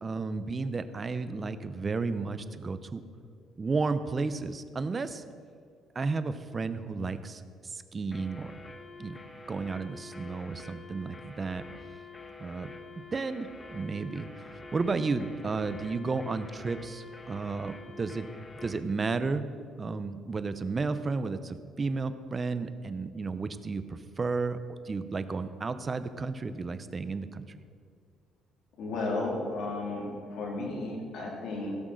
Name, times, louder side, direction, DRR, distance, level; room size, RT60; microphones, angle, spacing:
voice 1, 0.0-3.0 3.6-5.2 5.9-8.5 9.0-9.2 9.5-11.6 12.4-12.7 13.1-18.2 18.6-19.4 19.8-24.6 24.8-27.5, right 4 dB, 25° right, 12 dB, 0.6 m, -33 dB
sound 1, 8.1-18.9, left 3 dB, 15° left, 0.9 m, -47 dB
voice 2, 28.8-31.7, left 2 dB, 60° left, -1 dB, 3.1 m, -33 dB
16.5 x 6.2 x 6.4 m, 2.2 s
cardioid pair, 145°, 0 cm